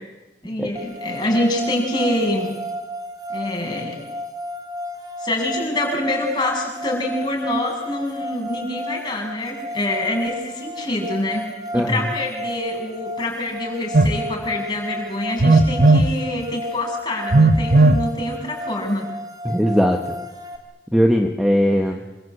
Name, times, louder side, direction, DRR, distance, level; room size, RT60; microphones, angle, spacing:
voice 1, 0.4-2.5 3.3-4.0 5.2-19.1, left 1 dB, 25° left, 0 dB, 7.5 m, -25 dB
sound 1, 0.8-20.6, equal, 20° right, 3.9 m, -33 dB
Telephone, 13.9-14.2 15.4-16.1 17.3-18.0, right 2 dB, 55° right, 1.4 m, -14 dB
voice 2, 19.4-20.2 20.9-22.0, equal, ahead, 2 dB, 1.6 m, -19 dB
27.0 x 24.5 x 8.5 m, 1.1 s
head